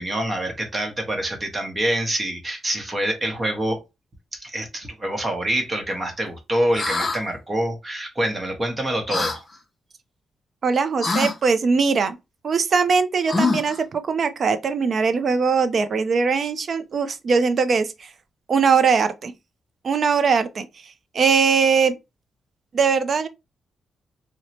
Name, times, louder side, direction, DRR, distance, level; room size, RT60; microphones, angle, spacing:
voice 1, 0.0-3.8 4.3-9.4, right 1 dB, 25° right, 0.8 m, -26 dB
sound 1, 6.7-7.2 9.1-9.4 11.0-11.4 13.3-13.8, left 3 dB, 30° left, 0.5 m, -23 dB
voice 2, 10.6-12.2 12.4-18.1 18.5-19.3 19.8-21.9 22.7-23.3, right 5 dB, 45° right, 0.4 m, -21 dB
3.0 x 2.0 x 2.7 m
wide cardioid pair, 140°, 0 cm